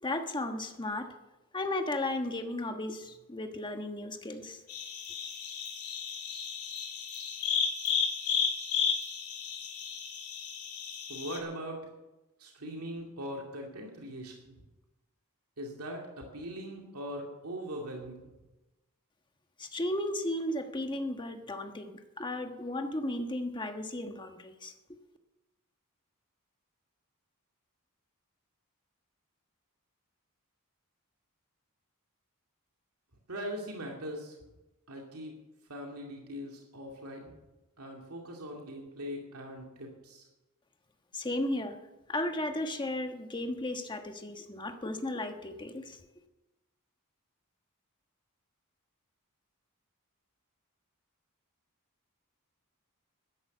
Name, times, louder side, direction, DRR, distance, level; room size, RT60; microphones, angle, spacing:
voice 1, 0.0-1.1 1.5-4.6 19.6-24.7 41.1-41.8 42.1-46.0, left 1 dB, 20° left, 6 dB, 1.3 m, -35 dB
sound 1, 4.7-11.4, left 7 dB, 75° left, 2.8 m, -33 dB
voice 2, 11.1-11.8 12.4-14.6 15.6-18.3 33.3-34.4 34.9-35.4 35.7-37.3 37.8-40.2, equal, 90° right, 0 dB, 2.4 m, -41 dB
13.0 x 10.5 x 7.1 m, 1.0 s
head